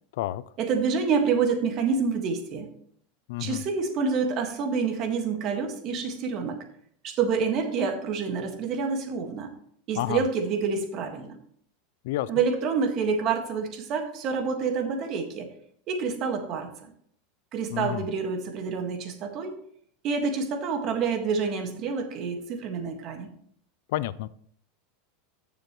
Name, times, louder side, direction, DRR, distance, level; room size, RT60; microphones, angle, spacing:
voice 1, 0.6-2.7 3.4-6.6 7.0-9.5 9.9-11.3 12.3-15.5 15.9-16.7 17.5-19.6 20.0-23.3, right 5 dB, 40° right, 5 dB, 1.7 m, -27 dB
voice 2, 3.3-3.6 9.9-10.2 12.0-12.4 17.7-18.1 23.9-24.3, left 15 dB, 70° left, 18 dB, 0.4 m, -30 dB
14.0 x 6.9 x 3.1 m, 0.64 s
supercardioid pair, 145°, 0 cm